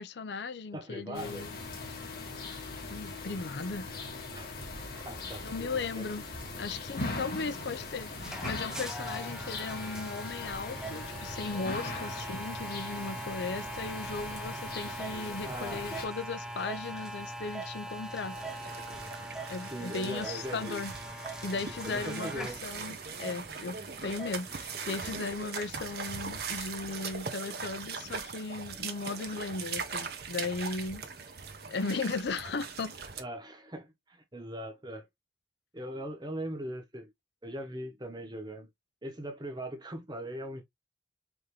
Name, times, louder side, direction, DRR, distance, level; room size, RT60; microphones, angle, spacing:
voice 1, 0.0-1.6 2.9-4.0 5.4-6.3 6.6-18.4 19.5-20.9 21.4-31.1 31.7-33.0, left 4 dB, 70° left, 0.5 m, -37 dB
voice 2, 0.7-1.5 4.3-4.5 5.0-6.1 15.4-15.9 19.7-20.8 21.8-22.6 33.2-35.1 35.7-37.1 37.4-38.7 39.0-40.6, right 1 dB, 25° right, 1.0 m, -40 dB
sound 1, 1.1-16.1, left 3 dB, 55° left, 1.8 m, -40 dB
sound 2, 7.5-25.0, right 1 dB, 5° right, 0.6 m, -42 dB
sound 3, 18.2-33.2, right 5 dB, 60° right, 0.8 m, -40 dB
5.2 x 2.7 x 3.0 m
head